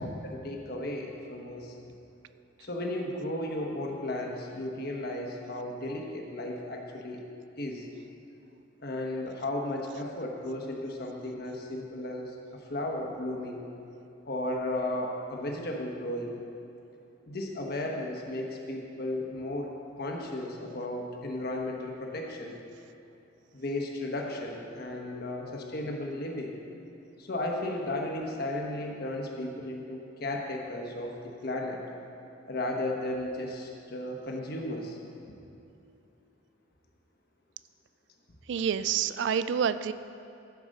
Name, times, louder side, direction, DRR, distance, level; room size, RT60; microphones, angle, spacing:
voice 1, 0.2-1.7 2.6-7.2 7.6-7.9 8.8-13.6 14.2-16.4 17.3-19.7 20.0-22.6 23.5-26.6 27.2-31.8 32.5-35.0, left 1 dB, 55° left, 1 dB, 1.2 m, -34 dB
voice 2, 38.5-39.9, right 7 dB, 65° right, 13 dB, 0.3 m, -28 dB
11.5 x 4.9 x 6.6 m, 2.7 s
head